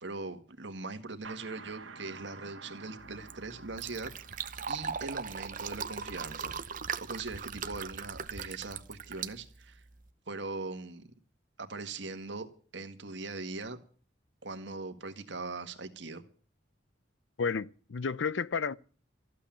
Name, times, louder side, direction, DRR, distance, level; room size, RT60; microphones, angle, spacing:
voice 1, 0.0-4.1 4.7-6.5 7.0-9.8 10.3-11.1 11.6-12.5 12.7-13.8 14.4-16.2, right 3 dB, 65° right, 1.8 m, -40 dB
Suspense echo hit, 1.2-6.7, right 4 dB, 85° right, 1.6 m, -51 dB
Fill (with liquid), 3.0-10.1, right 6 dB, 45° right, 0.8 m, -39 dB
voice 2, 17.4-18.7, left 5 dB, 75° left, 0.6 m, -31 dB
14.5 x 8.6 x 8.6 m
head